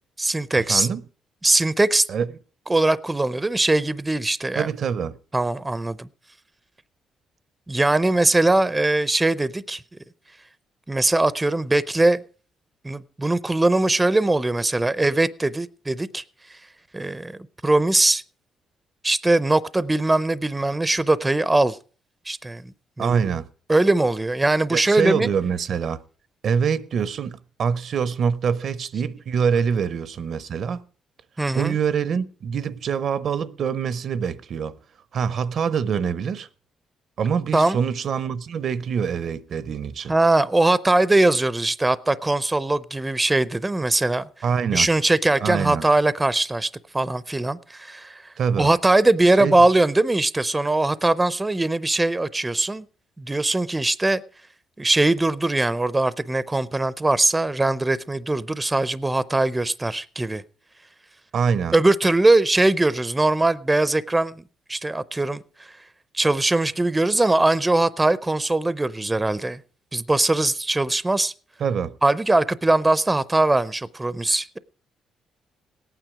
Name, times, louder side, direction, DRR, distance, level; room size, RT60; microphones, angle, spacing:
voice 1, 0.2-0.9 1.4-2.1 2.7-4.7 5.3-6.1 7.7-9.8 10.9-12.2 12.8-16.2 16.9-18.2 19.0-21.8 22.3-22.7 23.0-23.2 23.7-25.3 31.4-31.7 37.5-37.8 40.1-44.2 44.7-48.2 48.6-52.8 53.2-54.2 54.8-60.4 61.7-64.4 64.7-65.4 66.1-69.6 69.9-71.3 72.0-74.6, right 2 dB, 15° right, 0.5 m, -21 dB
voice 2, 0.7-1.0 2.1-2.3 4.5-5.2 23.0-23.5 24.7-26.0 26.4-30.8 31.5-34.8 35.1-36.5 37.2-40.1 44.4-44.9 45.4-45.9 48.4-48.7 49.4-49.6 61.3-61.7 71.6-71.9, right 6 dB, 60° right, 0.6 m, -25 dB
17.5 x 9.1 x 4.8 m
cardioid pair, 90°, 0 cm